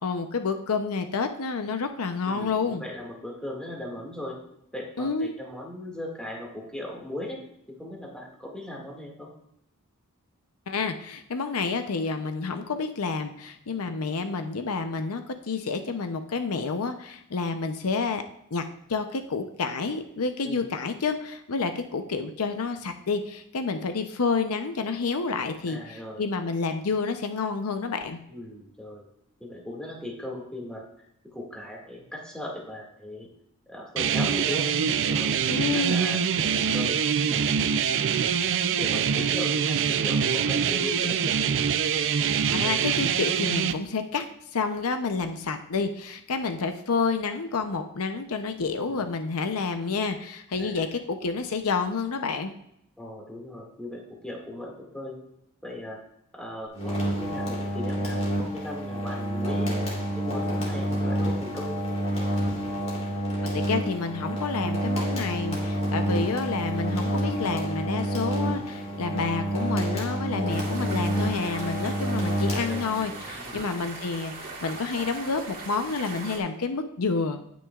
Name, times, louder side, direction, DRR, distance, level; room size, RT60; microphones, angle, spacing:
voice 1, 0.0-2.8 5.0-5.3 10.7-18.2 18.5-18.6 18.9-28.2 35.5-36.0 42.5-44.3 44.5-52.5 63.4-77.4, left 4 dB, 75° left, 7 dB, 0.7 m, -29 dB
voice 2, 2.2-4.4 4.7-7.4 7.7-9.3 20.4-20.7 25.7-26.2 28.3-29.1 29.4-30.8 31.3-33.3 33.7-34.7 35.1-36.2 36.5-37.5 38.6-41.7 48.8-49.0 50.6-50.9 53.0-55.2 55.6-56.0 56.3-59.8 60.1-62.0 72.5-72.9 73.3-73.6, left 1 dB, 5° left, -2 dB, 2.0 m, -38 dB
sound 1, 34.0-43.7, right 7 dB, 60° right, 0.5 m, -24 dB
sound 2, 56.7-73.2, right 1 dB, 30° left, 3.0 m, -28 dB
sound 3, 70.5-76.4, right 3 dB, 45° right, 2.3 m, -40 dB
18.0 x 6.1 x 2.4 m, 0.77 s
head